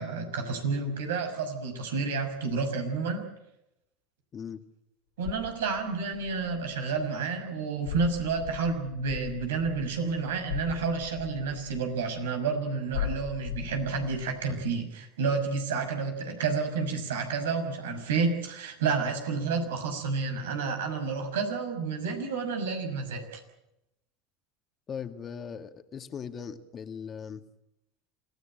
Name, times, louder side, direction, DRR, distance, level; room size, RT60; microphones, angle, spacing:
voice 1, 0.0-3.3 5.2-23.4, right 4 dB, 85° right, 5 dB, 6.1 m, -30 dB
sound 1, 5.2-7.0 7.8-12.3 12.9-14.7, left 11 dB, 85° left, 4.3 m, -39 dB
voice 2, 24.9-27.4, left 7 dB, 35° left, 8 dB, 2.2 m, -39 dB
27.5 x 16.0 x 9.0 m, 0.86 s
hypercardioid pair, 90°, 0 cm